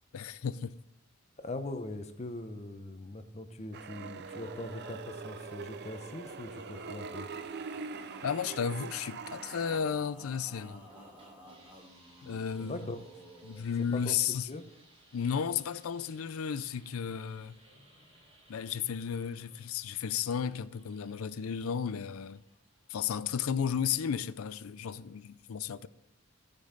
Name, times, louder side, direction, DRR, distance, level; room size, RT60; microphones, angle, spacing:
voice 1, 0.1-0.7 8.2-10.9 12.2-12.9 13.4-14.5 15.1-17.6 18.5-22.4 22.9-25.9, left 7 dB, 85° left, 0.4 m, -33 dB
voice 2, 1.4-7.3 12.6-13.0 13.9-14.1 14.5-14.6, left 2 dB, 30° left, 0.8 m, -41 dB
sound 1, 3.7-9.8, right 5 dB, 50° right, 0.4 m, -43 dB
Male singing, 3.9-13.7, equal, 5° right, 1.8 m, -52 dB
sound 2, 10.7-23.1, right 1 dB, 30° right, 3.2 m, -62 dB
14.5 x 5.4 x 3.9 m
head